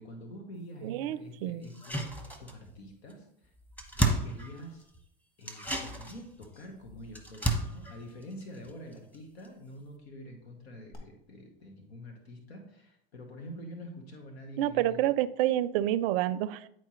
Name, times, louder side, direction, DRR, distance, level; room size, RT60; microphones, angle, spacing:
voice 1, 0.0-3.5 3.9-4.9 5.4-15.1, equal, 85° left, 3 dB, 1.3 m, -46 dB
voice 2, 0.8-1.7 14.6-16.7, right 13 dB, 65° right, 16 dB, 0.5 m, -28 dB
sound 1, 1.6-2.8 3.1-3.2 3.4-5.0 5.4-9.2 9.4-9.5, right 1 dB, 5° left, 1.0 m, -33 dB
sound 2, 5.7-6.2 6.5-6.7 7.0-7.1 7.4-7.5 10.9-11.0, left 5 dB, 30° left, 2.2 m, -49 dB
9.7 x 4.5 x 3.1 m, 0.74 s
hypercardioid pair, 100°, 31 cm